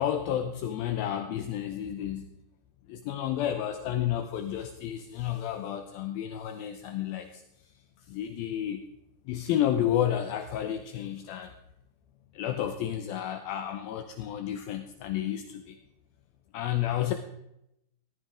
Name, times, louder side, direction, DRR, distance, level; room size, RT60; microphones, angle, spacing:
voice 1, 0.0-2.4 2.9-7.4 8.1-8.8 9.3-11.5 12.3-15.8 16.5-17.1, left 11 dB, 80° left, 7 dB, 2.3 m, -31 dB
17.0 x 14.0 x 3.7 m, 0.82 s
omnidirectional pair, 4.9 m